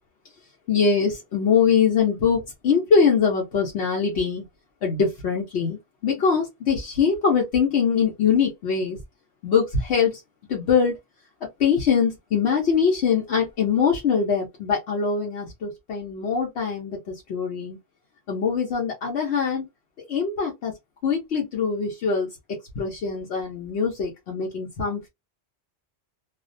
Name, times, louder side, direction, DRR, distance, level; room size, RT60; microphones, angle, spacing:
voice 1, 0.7-4.4 4.8-9.0 9.4-10.2 10.5-10.9 11.6-17.8 18.3-19.7 20.1-20.7 21.0-22.3 22.8-25.1, left 6 dB, 80° left, 1.0 m, -23 dB
2.4 x 2.1 x 2.5 m
omnidirectional pair, 1.1 m